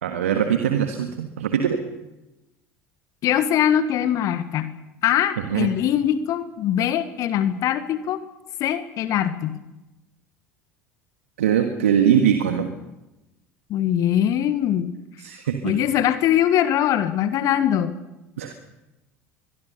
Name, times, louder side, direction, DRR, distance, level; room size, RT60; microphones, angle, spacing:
voice 1, 0.0-1.8 5.4-5.7 11.4-12.7 15.2-15.8 18.4-18.5, right 8 dB, 75° right, 6 dB, 1.7 m, -22 dB
voice 2, 3.2-4.7 5.0-8.2 8.6-9.6 13.7-14.9 15.6-17.9, left 10 dB, 50° left, 12 dB, 1.4 m, -22 dB
23.0 x 22.5 x 6.8 m, 1.0 s
figure-of-eight pair, 70°, 8 cm